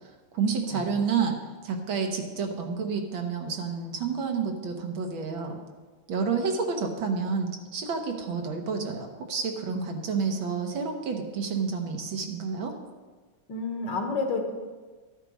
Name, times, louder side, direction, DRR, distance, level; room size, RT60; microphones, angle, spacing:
voice 1, 0.3-1.4 1.6-5.6 6.1-12.8, right 5 dB, 75° right, 3 dB, 1.9 m, -29 dB
voice 2, 13.5-14.4, left 4 dB, 65° left, 2 dB, 2.0 m, -29 dB
13.5 x 9.7 x 4.1 m, 1.4 s
omnidirectional pair, 2.2 m